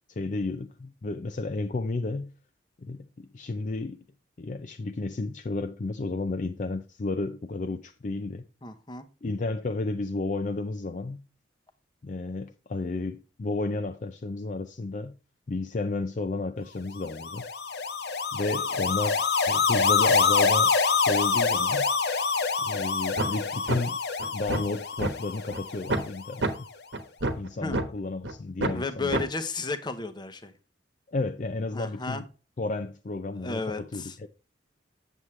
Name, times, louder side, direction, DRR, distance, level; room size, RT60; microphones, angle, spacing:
voice 1, 0.1-2.3 2.8-4.0 4.4-8.5 9.2-11.2 12.0-15.1 15.5-17.4 18.3-20.7 21.0-21.9 22.6-24.0 24.3-26.5 27.4-29.2 31.1-32.2 32.6-34.3, left 3 dB, 40° left, 0.4 m, -32 dB
voice 2, 8.6-9.1 27.6-27.8 28.7-30.5 31.7-32.2 33.4-34.2, left 3 dB, 25° left, 0.8 m, -33 dB
sound 1, 17.0-26.3, left 5 dB, 60° left, 0.8 m, -26 dB
sound 2, 23.2-23.3 23.7-23.8 24.2-25.1 25.5-25.6 25.9-26.1 26.4-26.5 26.9-27.9 28.2-28.3 28.6-28.8 29.1-29.2, right 2 dB, 70° right, 1.1 m, -27 dB
8.0 x 7.3 x 3.2 m
head